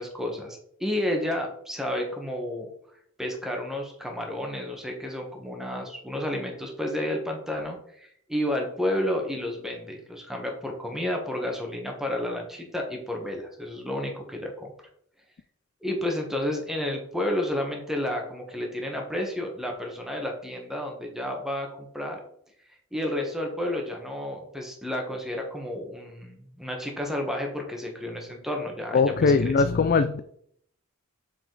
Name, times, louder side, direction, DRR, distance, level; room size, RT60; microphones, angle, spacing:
voice 1, 0.0-2.7 3.2-14.7 15.8-22.2 22.9-29.5, left 1 dB, ahead, 1 dB, 1.4 m, -31 dB
voice 2, 28.9-30.2, left 4 dB, 45° left, 10 dB, 0.4 m, -21 dB
7.0 x 5.1 x 4.0 m, 0.67 s
head